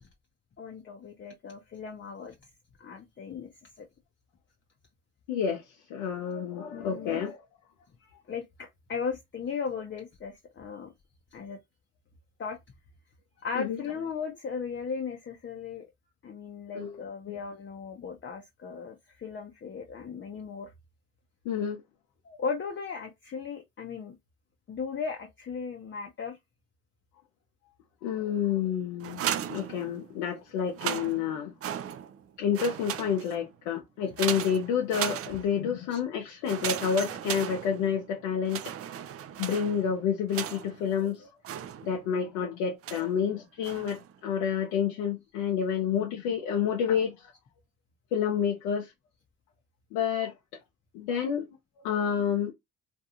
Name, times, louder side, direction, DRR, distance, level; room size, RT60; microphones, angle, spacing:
voice 1, 0.6-2.3 2.8-3.5 3.8-3.9 6.7-7.2 8.0-10.9 11.3-11.6 12.4-12.6 13.4-15.9 16.2-20.7 22.2-24.1 24.7-26.4 35.9-36.0 36.6-36.7, left 5 dB, 30° left, 0.6 m, -37 dB
voice 2, 5.3-5.6 5.9-7.4 13.6-13.8 16.8-16.9 17.3-17.4 21.5-21.8 28.0-31.5 32.4-38.6 39.4-41.3 41.8-47.1 48.1-48.9 49.9-50.3 50.9-51.4 51.8-52.5, left 7 dB, 80° left, 0.6 m, -29 dB
sound 1, 29.0-30.2 30.6-32.2 32.5-33.5 34.2-35.7 36.4-38.1 38.5-40.9 41.4-42.2 42.8-43.2 43.6-44.1, right 10 dB, 40° right, 0.4 m, -36 dB
2.5 x 2.3 x 2.7 m
supercardioid pair, 65°, 37 cm